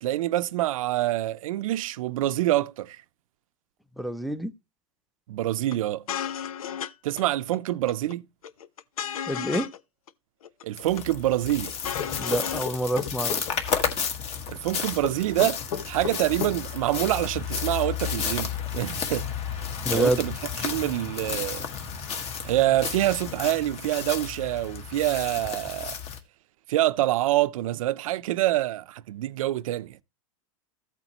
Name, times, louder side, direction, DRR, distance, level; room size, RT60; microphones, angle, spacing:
voice 1, 0.0-3.0 5.3-6.1 7.0-8.2 10.6-11.7 14.5-19.3 19.9-21.7 22.4-25.9 26.7-30.0, right 15 dB, 75° right, 0.7 m, -26 dB
voice 2, 4.0-4.5 9.3-9.7 12.2-13.3 19.8-20.2, right 1 dB, ahead, 0.5 m, -27 dB
sound 1, 5.7-5.8 6.1-6.9 7.2-7.3 7.5-8.1 8.4-9.8 10.1-10.2 10.4-11.0 11.3-12.7 13.0-13.1 13.3-13.9, left 9 dB, 90° left, 0.8 m, -34 dB
sound 2, 10.8-26.2, left 7 dB, 35° left, 1.7 m, -32 dB
sound 3, 12.0-13.4 15.0-16.6, left 8 dB, 60° left, 1.8 m, -32 dB
14.5 x 8.1 x 3.0 m
supercardioid pair, 135°, 18 cm